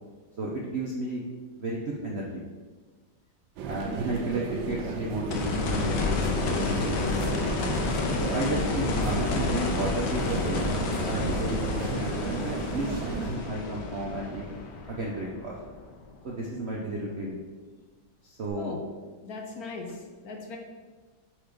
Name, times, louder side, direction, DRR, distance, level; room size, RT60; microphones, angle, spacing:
voice 1, 0.4-1.2 1.6-2.4 3.6-7.5 8.2-14.4 14.9-15.5 16.2-17.4 18.2-18.8, right 1 dB, 60° right, -3 dB, 0.6 m, -33 dB
sound 1, 3.6-13.3, right 5 dB, 80° right, 1.4 m, -35 dB
sound 2, 5.3-16.2 18.5-18.6, left 3 dB, 85° left, 1.6 m, -30 dB
voice 2, 19.2-20.6, left 3 dB, 65° left, 2 dB, 1.0 m, -39 dB
4.6 x 4.5 x 5.1 m, 1.4 s
omnidirectional pair, 2.1 m